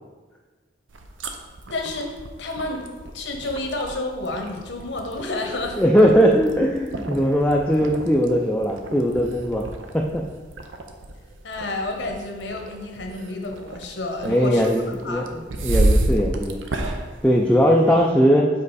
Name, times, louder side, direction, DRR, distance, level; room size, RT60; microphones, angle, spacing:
sound 1, 0.9-18.1, right 1 dB, 90° right, 0.6 m, -31 dB
voice 1, 1.7-2.8 3.1-5.8 11.4-14.7 15.0-15.3, left 2 dB, 70° left, 2 dB, 0.9 m, -30 dB
voice 2, 5.8-9.6 9.9-10.3 14.2-16.6 17.2-18.5, equal, 5° left, -1 dB, 0.3 m, -19 dB
5.3 x 5.1 x 4.0 m, 1.3 s
head